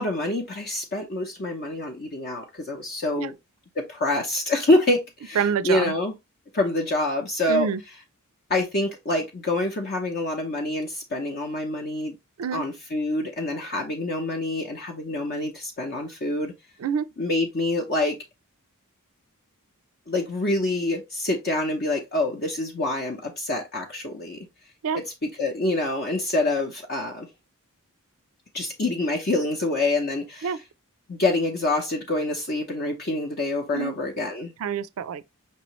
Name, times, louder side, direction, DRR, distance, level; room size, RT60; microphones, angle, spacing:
voice 1, 0.0-3.3 3.8-6.1 6.5-7.7 8.5-12.1 12.5-16.5 17.2-18.2 20.1-24.4 24.9-25.0 25.4-27.3 28.5-30.5 31.1-34.5, left 2 dB, 45° left, 0.8 m, -26 dB
voice 2, 5.4-6.0 7.5-7.8 12.4-12.6 16.8-17.1 24.8-25.0 30.4-30.6 33.7-34.0 34.6-35.2, right 7 dB, 70° right, 0.4 m, -27 dB
5.5 x 3.0 x 3.0 m
head